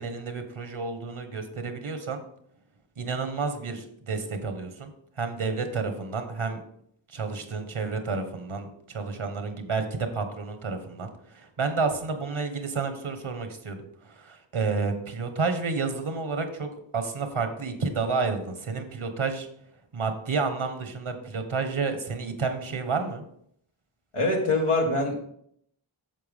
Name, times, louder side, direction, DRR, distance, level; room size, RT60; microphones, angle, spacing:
voice 1, 0.0-2.2 3.0-4.9 5.2-6.6 7.1-19.5 19.9-23.2, right 4 dB, 75° right, 7 dB, 1.4 m, -30 dB
voice 2, 24.1-25.2, left 2 dB, 80° left, 0 dB, 2.0 m, -24 dB
9.2 x 6.8 x 3.6 m, 0.69 s
wide cardioid pair, 50°, 49 cm